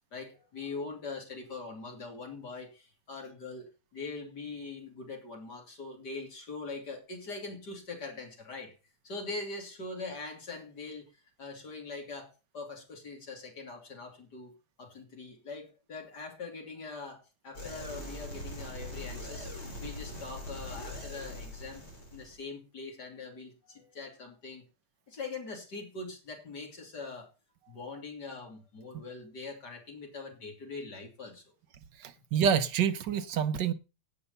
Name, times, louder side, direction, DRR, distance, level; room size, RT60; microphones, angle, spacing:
voice 1, 0.1-8.7 9.0-11.0 11.4-14.5 14.8-19.5 19.8-24.6 25.1-27.3 27.7-31.4, left 3 dB, 50° left, 3.7 m, -42 dB
sound 1, 17.5-22.4, left 1 dB, 75° left, 5.0 m, -42 dB
voice 2, 32.0-33.7, right 8 dB, 65° right, 1.3 m, -27 dB
17.0 x 5.7 x 5.4 m
omnidirectional pair, 2.3 m